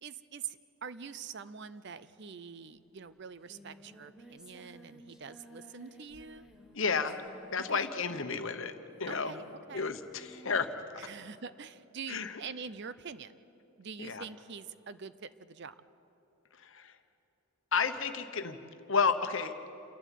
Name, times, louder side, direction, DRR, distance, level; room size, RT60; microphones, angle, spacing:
voice 1, 0.0-6.5 7.6-7.9 9.1-9.4 9.7-9.9 11.0-13.3 13.8-15.7, right 6 dB, 50° right, 14 dB, 0.6 m, -45 dB
Singing, 2.8-2.9 3.1-10.8, equal, 5° right, 1.4 m, -56 dB
voice 2, 6.7-7.2 7.5-9.4 9.7-10.7 12.1-12.4 14.0-14.2 16.6-17.0 17.7-18.6 18.9-19.5, left 5 dB, 60° left, 8 dB, 1.1 m, -32 dB
28.0 x 12.0 x 9.2 m, 3.0 s
head